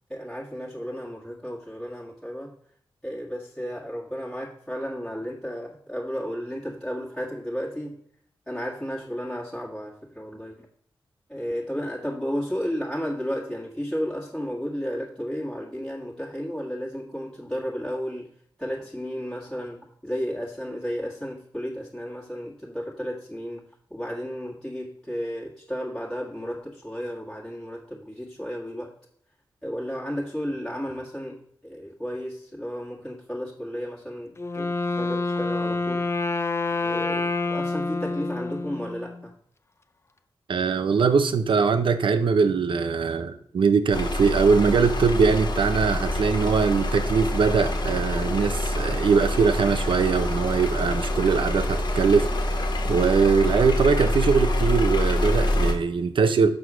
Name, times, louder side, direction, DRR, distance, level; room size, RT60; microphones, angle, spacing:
voice 1, 0.1-2.5 3.0-8.0 8.5-10.6 11.3-18.3 18.6-23.6 23.9-28.9 29.6-36.1 36.8-39.3, equal, 5° left, -5 dB, 1.6 m, -33 dB
Wind instrument woodwind instrument, 34.4-39.2, left 3 dB, 30° left, 0.6 m, -27 dB
voice 2, 40.5-52.3 52.8-56.5, right 5 dB, 75° right, 11 dB, 0.7 m, -22 dB
sound 1, 43.9-55.7, left 1 dB, 60° left, 1.5 m, -26 dB
6.2 x 4.7 x 6.1 m, 0.64 s
cardioid pair, 70°, 9 cm